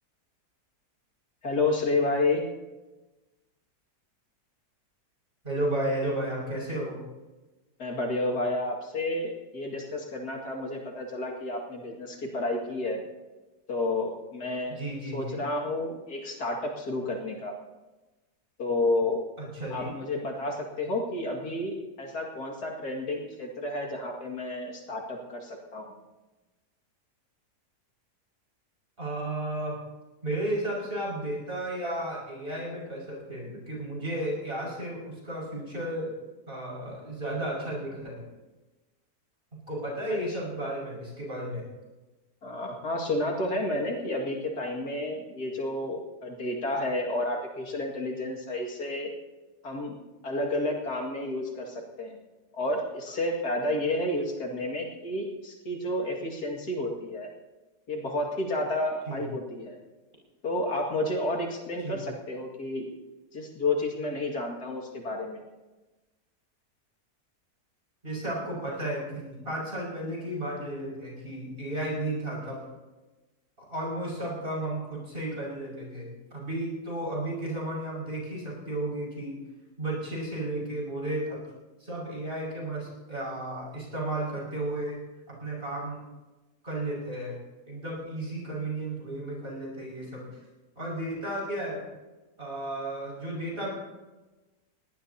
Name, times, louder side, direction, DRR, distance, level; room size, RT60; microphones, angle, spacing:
voice 1, 1.4-2.4 7.8-13.0 13.7-14.8 15.1-17.5 18.6-19.2 19.7-25.9 40.1-40.2 42.4-49.1 49.6-50.0 50.2-52.2 52.5-57.3 57.9-59.8 60.4-62.9 63.3-65.4, left 2 dB, 70° left, 0 dB, 2.7 m, -31 dB
voice 2, 5.4-7.0 14.7-15.4 19.4-20.0 29.0-29.8 30.2-36.2 36.5-38.2 39.7-41.7 59.1-59.2 61.8-62.0 68.0-72.6 73.6-79.4 79.8-81.4 81.8-85.0 85.3-86.0 86.6-87.4 87.7-90.3 90.8-91.9 92.4-93.7, right 1 dB, 35° right, -4 dB, 6.2 m, -33 dB
20.5 x 18.5 x 2.8 m, 1.1 s
omnidirectional pair, 1.7 m